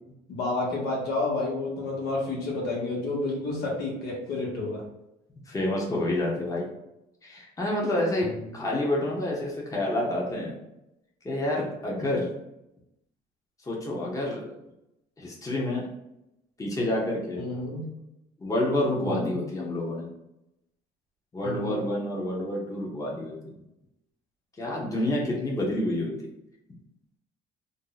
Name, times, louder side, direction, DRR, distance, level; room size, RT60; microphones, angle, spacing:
voice 1, 0.3-4.8 8.3-8.4 12.0-12.1 17.4-17.9 19.0-19.4 21.4-21.8, left 2 dB, 80° left, -3 dB, 1.1 m, -30 dB
voice 2, 5.5-6.7 7.2-10.6 11.2-12.3 13.7-14.6 15.2-15.9 16.6-17.5 18.4-20.1 21.3-23.5 24.6-26.1, left 1 dB, 20° left, -3 dB, 0.8 m, -28 dB
2.7 x 2.1 x 3.9 m, 0.88 s
cardioid pair, 110°, 17 cm